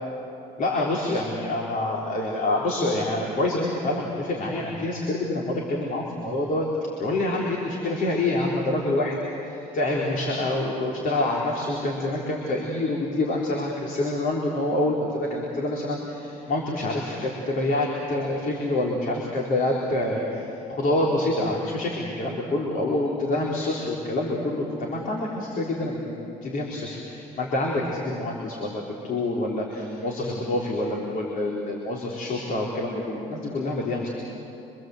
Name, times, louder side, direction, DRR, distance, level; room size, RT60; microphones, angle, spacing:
voice 1, 0.6-6.7 7.0-9.2 9.5-34.1, left 2 dB, 55° left, -2 dB, 3.9 m, -27 dB
26.5 x 25.5 x 7.9 m, 2.9 s
cardioid pair, 110°, 17 cm